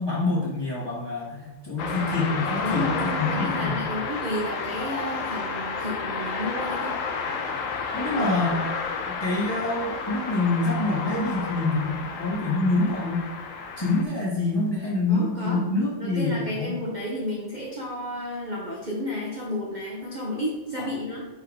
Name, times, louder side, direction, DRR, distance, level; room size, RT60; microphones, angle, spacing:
voice 1, 0.0-3.7 7.9-8.6 9.1-13.2 13.8-16.7 20.8-20.9, left 2 dB, 10° left, -7 dB, 1.9 m, -26 dB
sound 1, 1.8-14.0, left 5 dB, 65° left, 0.8 m, -31 dB
voice 2, 2.6-7.0 15.1-15.6 16.0-21.3, left 1 dB, 30° right, -4 dB, 1.0 m, -32 dB
5.8 x 4.7 x 5.0 m, 1.1 s
omnidirectional pair, 2.2 m